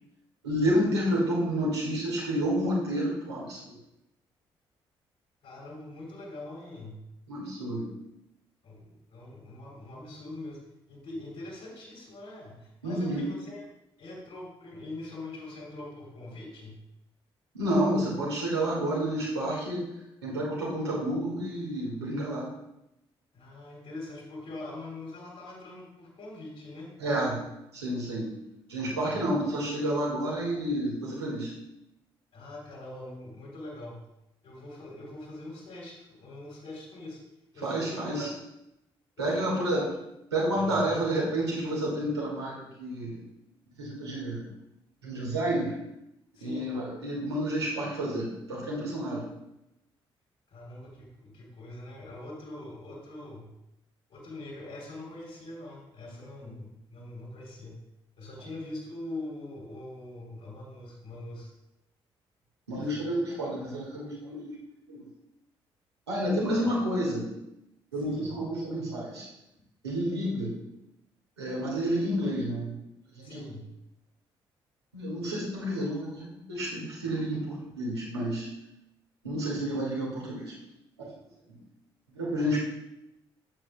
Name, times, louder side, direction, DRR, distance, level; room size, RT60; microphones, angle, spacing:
voice 1, 0.4-3.7 7.3-7.9 12.8-13.2 17.5-19.9 20.2-22.5 27.0-27.4 27.7-28.3 28.7-31.5 37.6-38.3 39.2-39.9 40.3-43.1 43.8-44.5 45.0-45.7 46.4-49.3 62.7-64.5 64.9-65.0 66.1-67.3 67.9-69.3 69.8-70.5 71.4-72.8 73.1-73.4 74.9-78.5 79.2-80.5 81.0-81.1 81.5-81.6 82.1-82.6, right 1 dB, 85° right, -5 dB, 1.7 m, -30 dB
voice 2, 5.4-7.0 8.6-10.6 10.9-13.7 14.0-16.8 23.3-26.9 28.9-29.2 30.3-30.4 32.3-34.1 34.4-37.2 37.5-38.1 39.2-39.7 40.5-40.8 46.3-46.7 50.5-53.5 54.1-57.8 58.2-61.5 62.7-63.1 63.5-63.7 66.5-66.6 68.0-68.3 73.2-73.7, left 2 dB, 60° left, -4 dB, 2.8 m, -43 dB
9.7 x 7.5 x 2.2 m, 0.86 s
figure-of-eight pair, 40°, 13 cm